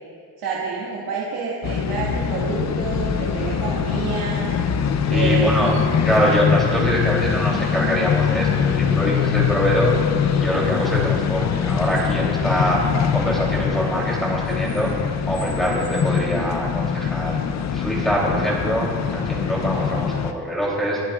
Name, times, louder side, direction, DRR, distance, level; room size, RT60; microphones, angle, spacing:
voice 1, 0.4-4.5 5.1-5.7, right 4 dB, 70° right, -6 dB, 2.1 m, -28 dB
sound 1, 1.6-20.3, left 7 dB, 40° left, 0.7 m, -23 dB
voice 2, 5.0-5.7 6.0-10.0 10.3-12.8 13.1-14.9 15.3-17.4 17.7-21.0, equal, ahead, -4 dB, 3.3 m, -24 dB
29.5 x 11.5 x 2.5 m, 2.1 s
cardioid pair, 165°, 42 cm